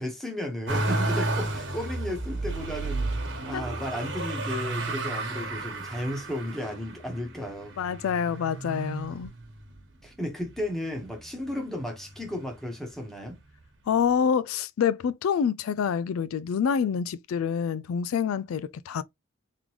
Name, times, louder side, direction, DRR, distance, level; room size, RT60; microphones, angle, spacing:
voice 1, 0.0-7.7 10.0-13.4, left 1 dB, ahead, 1.2 m, -34 dB
Motor vehicle (road), 0.7-9.8 10.4-11.2 11.5-12.6 13.6-13.7, right 2 dB, 60° right, 1.3 m, -32 dB
voice 2, 7.8-9.3 13.9-19.0, left 7 dB, 90° left, 0.3 m, -27 dB
3.7 x 3.5 x 3.0 m
head